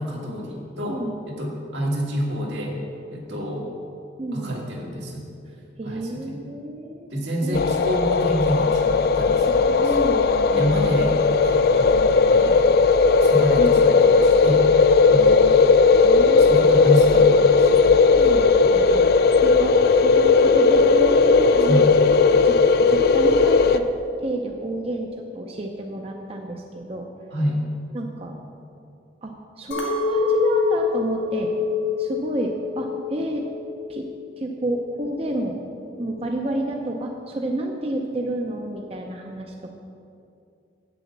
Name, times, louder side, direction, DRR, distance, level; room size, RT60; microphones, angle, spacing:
voice 1, 0.0-2.8 3.1-3.7 4.3-5.2 5.8-6.4 7.1-10.0 10.5-11.1 11.4-12.7 13.2-14.7 15.0-15.4 16.4-18.0 18.6-18.8 21.6-21.9 27.3-27.6, equal, 80° right, -2 dB, 2.0 m, -27 dB
voice 2, 0.9-1.2 4.2-4.5 5.8-7.1 7.4-7.7 9.7-10.8 13.6-13.8 15.1-15.6 16.0-16.8 18.0-19.1 19.4-21.8 22.3-23.9 24.2-27.1 27.9-28.4 29.2-31.5 32.0-33.5 33.9-34.1 34.4-35.6 36.0-39.8, right 1 dB, 35° right, 1 dB, 0.6 m, -30 dB
sound 1, 7.5-23.8, left 4 dB, 60° left, 0.4 m, -17 dB
Chink clink, 29.7-34.1 34.4-35.1, left 5 dB, 85° left, 1.7 m, -26 dB
8.4 x 7.0 x 7.2 m, 2.5 s
head